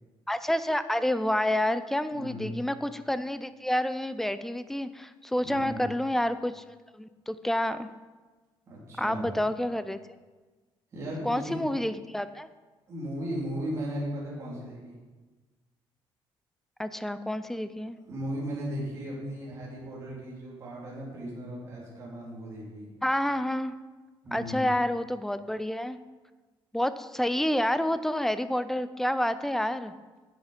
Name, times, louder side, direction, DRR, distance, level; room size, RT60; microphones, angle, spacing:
voice 1, 0.3-6.6 6.9-7.9 9.0-10.0 11.2-12.5 16.8-18.0 23.0-23.7 24.3-26.0 26.7-29.9, left 1 dB, 5° left, 12 dB, 0.4 m, -29 dB
voice 2, 2.1-2.6 5.4-5.9 8.7-9.3 10.9-11.6 12.9-15.0 18.1-22.9 24.2-24.8, equal, 30° right, -6 dB, 3.4 m, -36 dB
9.9 x 8.4 x 5.1 m, 1.3 s
cardioid pair, 160°, 9 cm